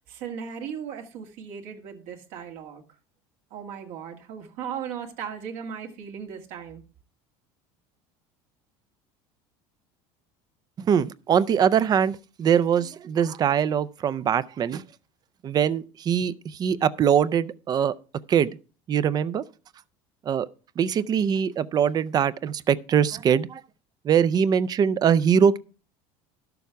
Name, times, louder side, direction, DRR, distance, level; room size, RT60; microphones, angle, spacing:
voice 1, 0.1-2.8 3.5-6.8, right 7 dB, 70° right, 1.9 m, -37 dB
voice 2, 10.8-14.8 15.4-17.9 18.3-18.5 18.9-19.4 20.3-20.5 20.8-23.6 24.0-25.6, right 8 dB, 30° right, 0.5 m, -22 dB
12.0 x 6.9 x 4.6 m
supercardioid pair, 130°, 13 cm